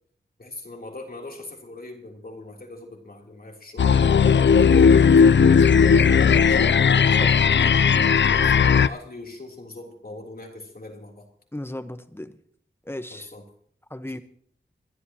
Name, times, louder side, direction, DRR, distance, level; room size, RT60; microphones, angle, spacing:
voice 1, 0.4-4.0 4.5-5.3 5.6-5.9 7.6-7.7 8.3-11.3 13.1-13.4, left 2 dB, 50° left, 1 dB, 3.3 m, -41 dB
sound 1, 3.8-8.9, left 6 dB, 75° left, 0.5 m, -16 dB
voice 2, 6.3-7.4 11.5-12.4 12.9-13.3 13.9-14.2, left 1 dB, 10° left, 10 dB, 1.1 m, -36 dB
25.5 x 12.0 x 2.9 m, 0.63 s
wide cardioid pair, 80°, 19 cm